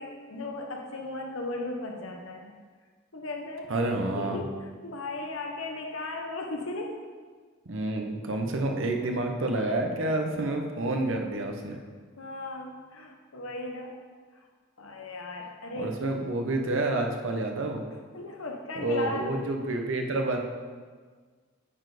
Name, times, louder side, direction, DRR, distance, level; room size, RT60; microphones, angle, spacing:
voice 1, 0.0-2.5 3.1-3.7 4.1-4.5 4.8-7.0 12.2-14.0 14.8-15.9 18.1-19.3, left 2 dB, 80° left, 1 dB, 1.1 m, -36 dB
voice 2, 3.7-4.5 7.7-11.8 15.8-17.8 18.8-20.4, right 2 dB, 65° right, 3 dB, 0.9 m, -29 dB
8.7 x 4.3 x 5.0 m, 1.5 s
head